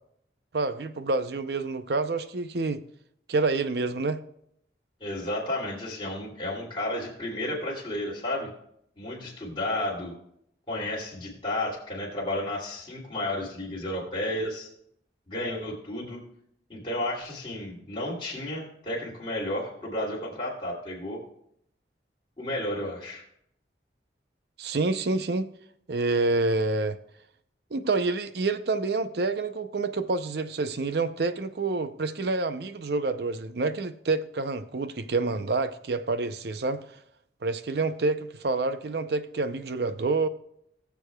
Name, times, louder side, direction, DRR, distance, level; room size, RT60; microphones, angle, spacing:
voice 1, 0.5-2.8 3.3-4.2 24.6-25.5 25.9-27.0 27.7-36.8 37.4-40.3, right 3 dB, 65° right, 0.6 m, -28 dB
voice 2, 5.0-8.5 9.0-10.1 10.7-14.7 15.3-16.2 16.7-21.2 22.4-23.2, left 1 dB, 25° left, 2.5 m, -32 dB
20.0 x 6.9 x 2.3 m
head